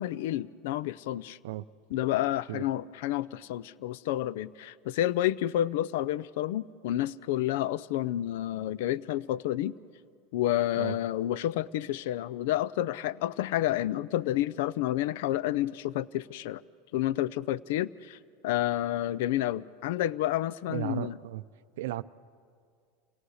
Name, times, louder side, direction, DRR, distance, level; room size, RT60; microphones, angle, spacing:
voice 1, 0.0-1.4 1.9-9.8 10.3-16.6 16.9-18.2 18.4-21.2, left 13 dB, 75° left, 20 dB, 0.4 m, -30 dB
voice 2, 20.7-21.4 21.8-22.0, right 15 dB, 80° right, 15 dB, 0.5 m, -34 dB
28.5 x 17.5 x 6.5 m, 2.2 s
supercardioid pair, 130°, 0 cm